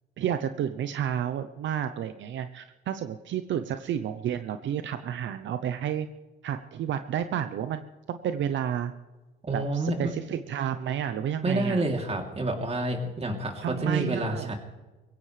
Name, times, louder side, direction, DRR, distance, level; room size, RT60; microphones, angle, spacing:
voice 1, 0.2-6.1 6.4-8.9 9.5-11.8 13.6-14.5, right 9 dB, 70° right, 10 dB, 0.8 m, -31 dB
voice 2, 9.4-10.1 11.4-14.6, right 2 dB, 30° right, 2 dB, 3.1 m, -28 dB
22.0 x 16.5 x 3.3 m, 1.2 s
cardioid pair, 90°, 20 cm